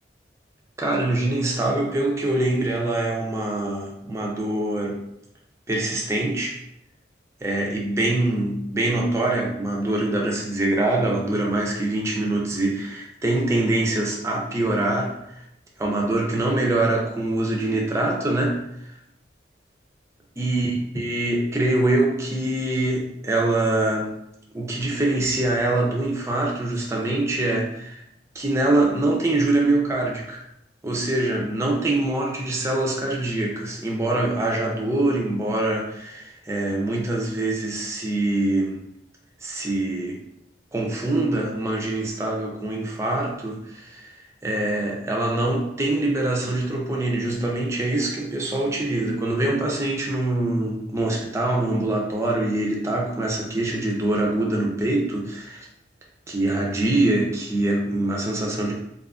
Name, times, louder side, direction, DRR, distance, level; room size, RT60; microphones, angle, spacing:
voice 1, 0.8-5.0 5.7-6.6 7.4-15.4 15.8-18.9 20.4-24.1 24.5-28.0 28.3-30.4 30.8-38.8 39.4-40.2 40.7-44.1 44.4-55.7 56.3-58.7, right 2 dB, 15° right, -1 dB, 0.4 m, -24 dB
2.5 x 2.4 x 2.3 m, 0.79 s
head